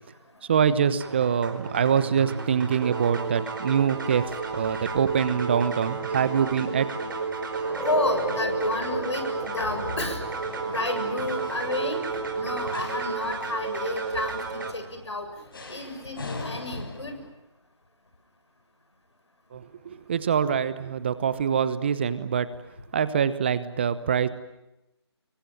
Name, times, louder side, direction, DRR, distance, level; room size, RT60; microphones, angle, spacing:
voice 1, 0.5-4.2 4.5-6.9 19.5-22.5 22.9-24.3, right 7 dB, 25° right, 15 dB, 1.0 m, -24 dB
sound 1, 1.0-14.7, right 4 dB, 50° right, 4.8 m, -32 dB
sound 2, 3.7-17.3, left 3 dB, 55° left, 5.1 m, -45 dB
sound 3, 5.4-16.5, right 1 dB, ahead, 6.3 m, -39 dB
voice 2, 7.8-10.2 10.6-17.2, left 2 dB, 85° left, 7 dB, 7.4 m, -31 dB
27.0 x 23.5 x 9.2 m, 0.89 s
figure-of-eight pair, 165°, 14 cm